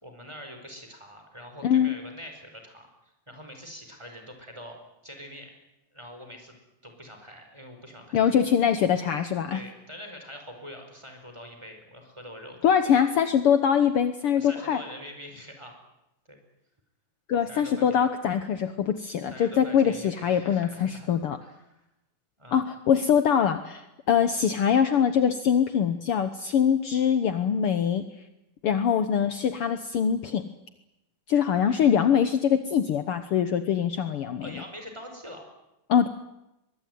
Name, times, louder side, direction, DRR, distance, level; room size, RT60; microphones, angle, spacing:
voice 1, 0.0-5.5 5.9-6.5 6.8-8.5 9.5-12.6 14.4-15.7 16.3-16.4 17.5-18.0 19.3-21.1 21.4-21.8 22.4-22.7 34.4-35.5, equal, 10° right, 4 dB, 4.8 m, -44 dB
voice 2, 1.6-1.9 8.1-9.6 12.6-14.8 17.3-21.4 22.5-28.0 28.6-30.5 31.3-34.5 35.9-36.1, left 8 dB, 75° left, 10 dB, 1.3 m, -23 dB
23.5 x 21.5 x 9.4 m, 0.91 s
omnidirectional pair, 4.0 m